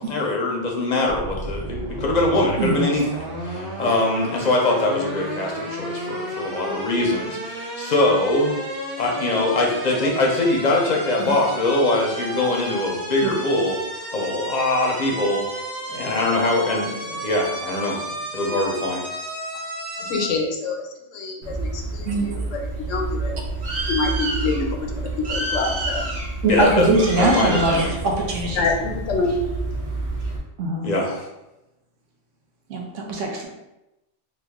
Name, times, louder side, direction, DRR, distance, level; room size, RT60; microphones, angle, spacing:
voice 1, 0.0-8.6 9.0-13.8 14.1-15.4 15.9-18.0 18.3-19.1 26.4-26.9 27.1-27.9 30.8-31.3, left 2 dB, 45° left, -1 dB, 0.6 m, -22 dB
sound 1, 1.1-20.3, right 1 dB, 25° right, 0.6 m, -32 dB
voice 2, 20.0-23.3 23.9-24.8 25.3-26.0 28.6-29.3, left 4 dB, 85° left, 1 dB, 1.0 m, -26 dB
Bird, 21.4-30.4, right 2 dB, 55° right, 0.9 m, -28 dB
voice 3, 26.4-28.7 30.6-30.9 32.7-33.5, right 2 dB, 85° right, 1 dB, 1.0 m, -22 dB
3.0 x 2.3 x 3.5 m, 0.94 s
omnidirectional pair, 1.2 m